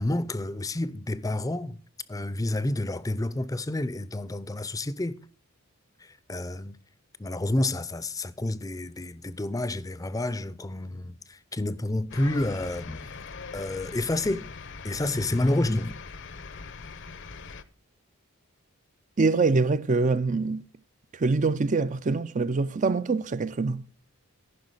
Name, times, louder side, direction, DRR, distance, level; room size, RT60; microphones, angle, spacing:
voice 1, 0.0-1.8 2.1-5.2 6.3-6.8 7.2-13.1 13.5-14.5 14.8-16.0, left 1 dB, 15° left, 0.6 m, -29 dB
sound 1, 12.1-17.6, left 4 dB, 60° left, 0.8 m, -42 dB
voice 2, 19.2-20.6 21.1-23.8, right 3 dB, 35° right, 0.4 m, -24 dB
14.5 x 5.9 x 6.3 m
head